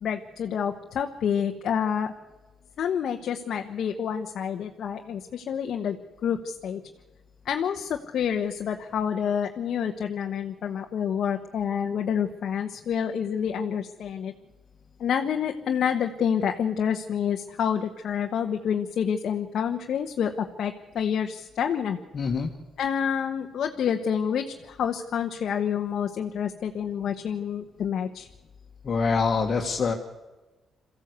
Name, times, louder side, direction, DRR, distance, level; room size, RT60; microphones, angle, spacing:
voice 1, 0.0-2.1 2.8-6.0 6.2-6.8 7.4-14.3 15.0-22.0 22.8-28.3, left 8 dB, 65° left, 4 dB, 1.1 m, -28 dB
voice 2, 22.1-22.5 28.8-29.9, left 5 dB, 45° left, 1 dB, 1.6 m, -25 dB
22.5 x 15.0 x 8.2 m, 1.2 s
cardioid pair, 90°, 0 cm